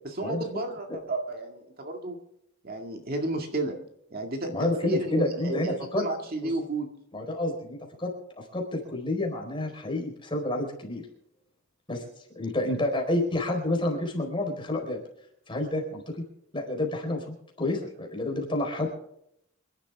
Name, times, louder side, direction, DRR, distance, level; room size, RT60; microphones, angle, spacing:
voice 1, 0.0-2.2 2.6-3.8 4.1-6.9, right 2 dB, 45° right, 3 dB, 2.1 m, -32 dB
voice 2, 4.5-6.0 7.1-11.0 11.9-12.0 12.3-15.0 15.5-16.0 16.5-18.9, left 1 dB, 25° left, 1 dB, 4.4 m, -29 dB
27.0 x 12.0 x 3.5 m, 0.76 s
head